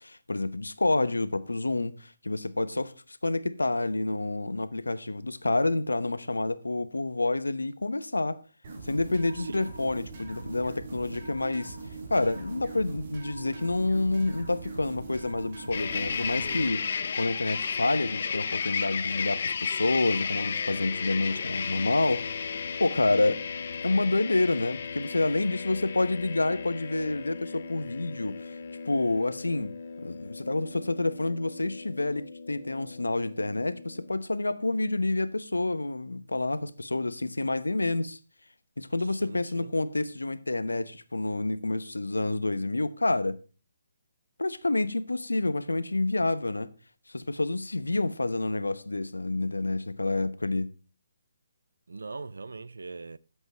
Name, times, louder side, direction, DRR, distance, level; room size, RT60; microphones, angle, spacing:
voice 1, 0.0-8.4 8.8-11.8 12.1-16.8 17.1-22.3 22.8-23.4 23.8-28.6 28.8-38.2 38.8-43.4 44.4-46.7 47.1-50.7, left 2 dB, 90° left, 0.9 m, -28 dB
sound 1, 8.6-16.6, right 3 dB, 45° right, 3.5 m, -41 dB
voice 2, 9.4-9.7 39.1-39.7 51.9-53.2, right 3 dB, 75° right, 0.6 m, -41 dB
sound 2, 15.7-34.1, left 6 dB, 60° left, 0.8 m, -34 dB
11.0 x 8.0 x 4.4 m
figure-of-eight pair, 140°, 0 cm